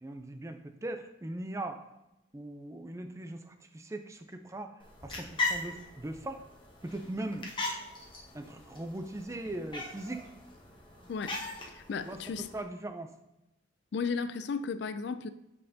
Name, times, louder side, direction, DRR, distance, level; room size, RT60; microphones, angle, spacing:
voice 1, 0.0-1.8 2.3-4.7 5.0-6.4 6.8-7.5 8.3-10.3 12.0-13.1, right 1 dB, 15° right, 0.4 m, -40 dB
sound 1, 4.8-12.6, left 3 dB, 25° left, 1.0 m, -39 dB
voice 2, 11.7-12.5 13.9-15.3, left 5 dB, 60° left, 0.3 m, -34 dB
7.7 x 5.5 x 2.7 m
head